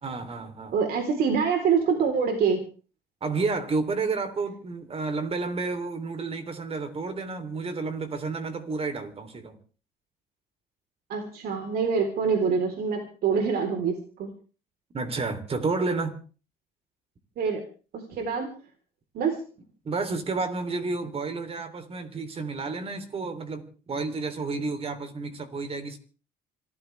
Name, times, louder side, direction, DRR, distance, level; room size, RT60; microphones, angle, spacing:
voice 1, 0.0-0.8 3.2-9.6 14.9-16.1 19.8-26.0, right 3 dB, 35° right, 3.4 m, -31 dB
voice 2, 0.7-2.6 11.1-14.3 17.4-17.6 17.9-18.5 19.1-19.4, right 6 dB, 65° right, 4.1 m, -25 dB
26.5 x 15.0 x 3.5 m
cardioid pair, 110°, 17 cm